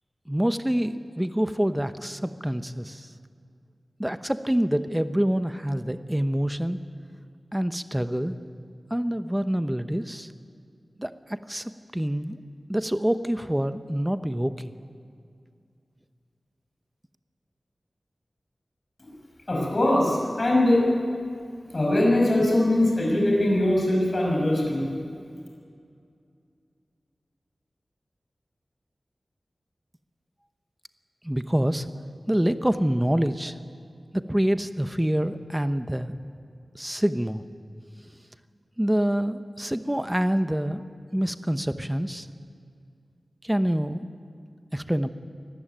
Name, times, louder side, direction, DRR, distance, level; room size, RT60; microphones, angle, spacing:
voice 1, 0.3-3.1 4.0-6.8 7.5-8.4 8.9-10.3 11.0-12.4 12.7-14.7 31.2-31.9 32.3-33.6 34.1-36.2 36.7-37.4 38.8-40.8 41.1-42.3 43.4-44.1 44.7-45.1, equal, 10° right, 11 dB, 1.0 m, -26 dB
voice 2, 19.5-20.8 21.7-24.8, left 1 dB, 50° left, -2 dB, 6.4 m, -21 dB
24.0 x 14.5 x 9.1 m, 2.3 s
wide cardioid pair, 75°, 0 cm